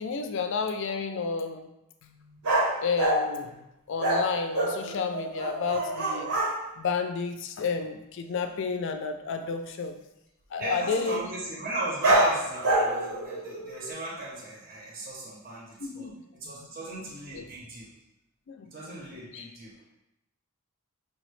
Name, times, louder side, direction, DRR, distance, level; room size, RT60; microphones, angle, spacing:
voice 1, 0.0-1.7 2.0-2.4 2.8-3.6 3.9-6.3 6.8-9.9 10.5-11.2 15.8-16.2 17.3-17.4 18.5-18.7 19.3-19.5, left 5 dB, 55° left, 7 dB, 0.3 m, -31 dB
sound 1, 2.4-3.3 4.0-6.6 12.0-13.9, right 1 dB, 75° right, 0.8 m, -26 dB
voice 2, 10.6-16.1 16.4-17.9 18.7-19.7, right 2 dB, 40° right, -3 dB, 0.6 m, -36 dB
5.3 x 2.0 x 3.1 m, 0.87 s
head